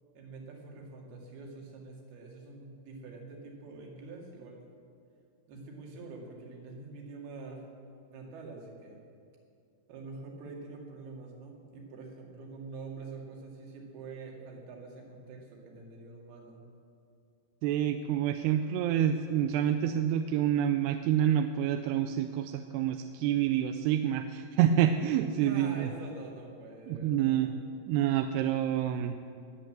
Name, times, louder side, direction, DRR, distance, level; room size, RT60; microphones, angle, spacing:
voice 1, 0.2-4.6 5.5-7.6 8.1-9.0 9.9-16.6 25.4-27.7, right 3 dB, 75° right, 0 dB, 4.1 m, -46 dB
voice 2, 17.6-25.9 26.9-27.5 27.9-29.2, right 10 dB, 90° right, 7 dB, 2.6 m, -28 dB
20.0 x 8.0 x 7.5 m, 2.6 s
omnidirectional pair, 4.6 m